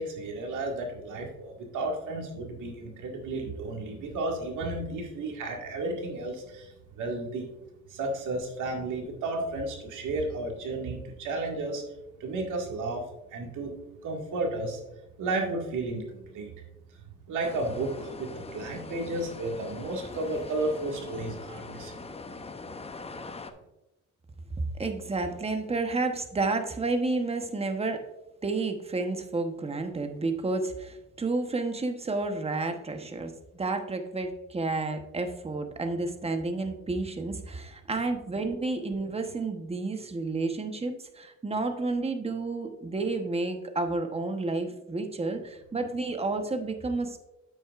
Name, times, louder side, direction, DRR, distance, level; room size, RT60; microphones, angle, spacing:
voice 1, 0.0-7.5 7.9-11.8 12.2-13.7 14.0-14.8 15.2-16.5 16.9-21.9, right 2 dB, 80° right, 1 dB, 1.9 m, -33 dB
sound 1, 17.4-23.5, left 3 dB, 20° left, 0.7 m, -42 dB
voice 2, 24.8-28.0 28.4-47.2, right 3 dB, 20° right, 6 dB, 1.0 m, -31 dB
9.0 x 7.8 x 2.5 m, 0.95 s
cardioid pair, 90°, 30 cm